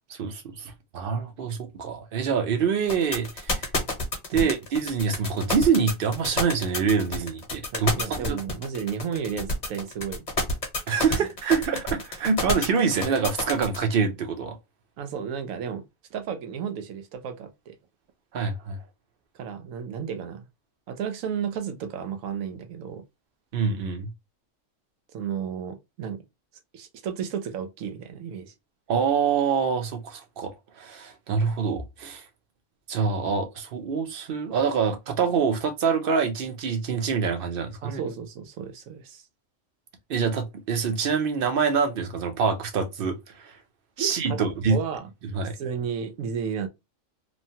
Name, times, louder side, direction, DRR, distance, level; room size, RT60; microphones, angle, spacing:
voice 1, 0.1-3.7 4.3-7.9 8.3-8.4 10.9-14.6 18.3-18.8 23.5-24.1 28.9-30.5 30.8-32.2 32.9-38.0 40.1-43.5 44.0-44.8 45.3-45.5, right 6 dB, 55° right, 0.7 m, -25 dB
sound 1, 2.9-13.8, left 2 dB, 35° left, 1.0 m, -28 dB
voice 2, 7.7-10.2 11.2-11.3 15.0-15.8 16.1-17.8 19.3-20.4 20.9-23.0 25.1-26.2 26.7-28.5 37.8-39.2 44.0-45.1 45.6-46.7, right 7 dB, 80° right, 1.0 m, -33 dB
3.1 x 2.2 x 2.7 m
omnidirectional pair, 1.4 m